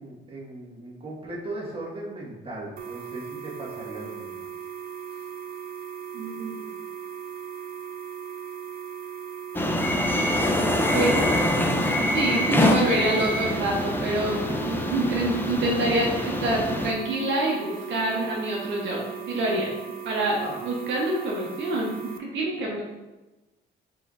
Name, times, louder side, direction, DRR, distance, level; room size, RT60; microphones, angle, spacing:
voice 1, 0.0-4.5 5.1-5.2 20.4-20.6, right 2 dB, 30° right, -5 dB, 1.5 m, -38 dB
sound 1, 2.8-22.2, right 8 dB, 50° right, 0.4 m, -38 dB
voice 2, 6.1-6.8 10.9-11.4 12.1-14.4 14.6-19.7 20.0-22.8, right 1 dB, 70° right, -3 dB, 0.9 m, -27 dB
sound 2, 9.5-16.9, left 1 dB, 10° left, 0.4 m, -25 dB
4.9 x 3.7 x 2.5 m, 1.1 s
cardioid pair, 90°, 20 cm